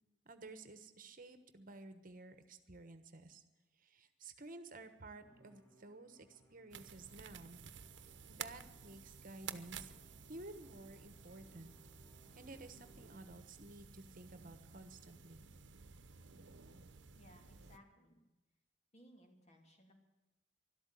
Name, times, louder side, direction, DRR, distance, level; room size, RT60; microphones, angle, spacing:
voice 1, 0.2-3.4 3.8-7.6 8.3-11.7 12.3-15.4, right 2 dB, 50° right, 10 dB, 1.2 m, -53 dB
Musical instrument, 5.2-13.8, right 2 dB, 20° left, 3.5 m, -68 dB
sound 1, 6.7-17.8, right 7 dB, 85° right, 0.9 m, -53 dB
voice 2, 17.1-18.2 18.9-19.9, equal, 40° left, 3 dB, 2.8 m, -63 dB
12.5 x 12.5 x 8.2 m, 1.1 s
head